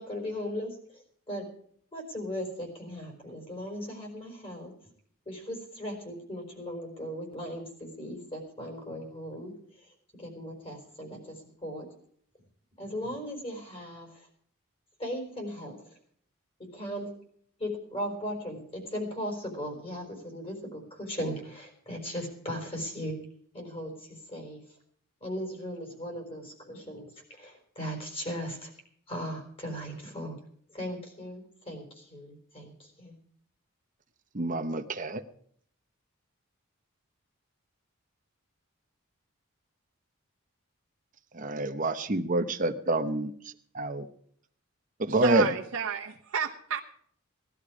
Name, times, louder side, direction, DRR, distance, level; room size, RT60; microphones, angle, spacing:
voice 1, 0.0-1.4 1.9-4.7 5.3-11.9 12.8-14.3 15.0-16.0 16.7-17.1 17.6-23.2 23.5-24.6 25.2-28.7 29.1-30.4 30.7-33.2, equal, 25° left, 2 dB, 4.5 m, -38 dB
voice 2, 34.3-35.2 41.3-43.3 43.7-44.1 45.0-45.5, right 2 dB, 40° right, 7 dB, 0.9 m, -27 dB
voice 3, 45.2-46.8, right 6 dB, 80° right, -1 dB, 1.1 m, -31 dB
18.5 x 11.5 x 4.9 m, 0.62 s
head